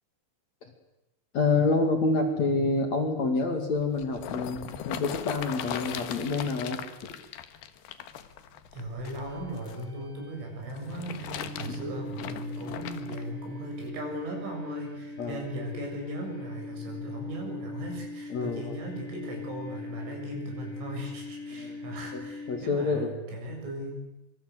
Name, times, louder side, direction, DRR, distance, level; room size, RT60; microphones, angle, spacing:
voice 1, 1.3-6.8 11.7-11.8 15.2-15.4 18.3-18.7 21.6-21.8 22.1-22.2 22.5-23.1, left 3 dB, 45° left, 5 dB, 3.0 m, -27 dB
sound 1, 3.7-9.8 10.7-13.2 13.9-14.0, left 10 dB, 65° left, 3.1 m, -39 dB
voice 2, 8.7-24.0, equal, 80° right, 2 dB, 9.6 m, -38 dB
sound 2, 9.0-23.0, left 2 dB, 45° right, 9.4 m, -41 dB
26.5 x 24.5 x 8.3 m, 0.94 s
omnidirectional pair, 5.4 m